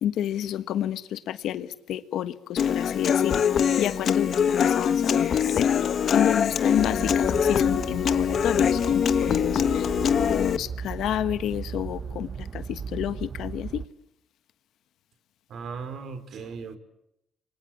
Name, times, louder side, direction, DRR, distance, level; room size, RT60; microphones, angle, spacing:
voice 1, 0.0-3.5 3.8-9.9 10.3-13.8, left 11 dB, 80° left, 14 dB, 1.3 m, -30 dB
Human voice / Acoustic guitar, 2.6-10.6, left 8 dB, 60° left, 1.4 m, -23 dB
sound 1, 6.8-13.9, right 6 dB, 45° right, 1.0 m, -36 dB
voice 2, 15.5-16.8, right 5 dB, 65° right, 11 dB, 4.3 m, -37 dB
28.0 x 24.5 x 8.6 m, 0.82 s
cardioid pair, 90°, 0 cm